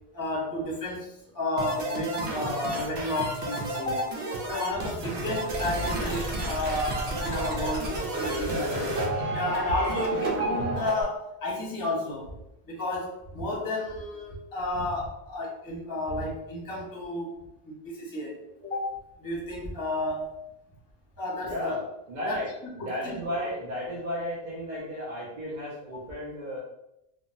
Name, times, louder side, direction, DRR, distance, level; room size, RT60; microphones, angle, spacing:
voice 1, 0.1-4.1 4.4-8.8 9.3-12.3 12.7-17.4 17.6-20.4 21.2-21.8 22.2-22.4 22.8-23.2 25.9-26.1, left 1 dB, 20° left, -5 dB, 0.7 m, -32 dB
sound 1, 1.6-11.0, right 2 dB, 85° right, 0.9 m, -31 dB
voice 2, 8.4-8.9 21.4-22.5 22.7-26.6, equal, 50° right, -6 dB, 0.8 m, -34 dB
3.3 x 2.1 x 2.5 m, 0.84 s
omnidirectional pair, 1.0 m